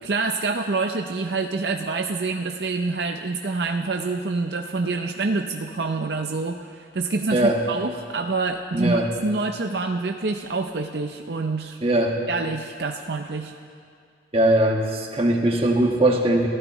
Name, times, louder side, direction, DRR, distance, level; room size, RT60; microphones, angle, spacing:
voice 1, 0.0-11.8 12.3-13.5, right 3 dB, 65° right, 5 dB, 0.6 m, -27 dB
voice 2, 8.7-9.1 11.8-12.2 14.3-16.5, right 1 dB, 30° right, 0 dB, 1.7 m, -20 dB
29.0 x 15.5 x 3.1 m, 2.2 s
head